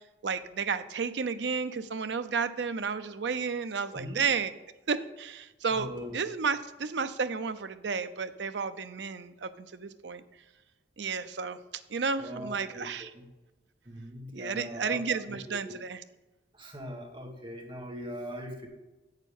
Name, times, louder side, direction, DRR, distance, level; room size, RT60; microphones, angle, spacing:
voice 1, 0.0-4.5 4.9-10.2 11.0-11.6 11.9-13.1 14.3-16.0, right 5 dB, 80° right, 11 dB, 0.6 m, -32 dB
voice 2, 3.9-4.2 5.7-6.2 12.2-13.2 13.8-15.7 16.5-18.7, equal, 30° right, 1 dB, 1.6 m, -41 dB
8.3 x 6.6 x 5.3 m, 1.1 s
head